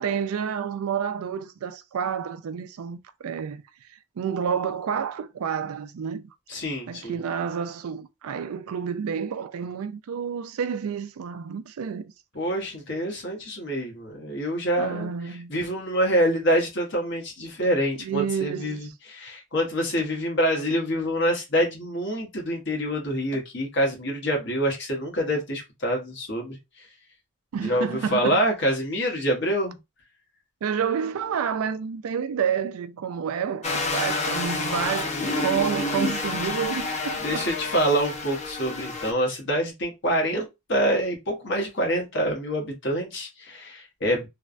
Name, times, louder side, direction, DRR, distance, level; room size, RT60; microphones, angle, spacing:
voice 1, 0.0-3.6 4.2-6.2 6.9-12.1 14.8-15.5 18.0-18.9 27.5-28.4 30.6-37.5, right 7 dB, 85° right, 0.4 m, -29 dB
voice 2, 6.5-7.2 12.3-15.1 15.5-26.6 27.6-29.8 35.1-36.1 37.2-44.3, equal, 55° left, 1.1 m, -26 dB
sound 1, 33.6-39.1, left 3 dB, 30° left, 0.6 m, -29 dB
3.2 x 2.1 x 2.4 m
head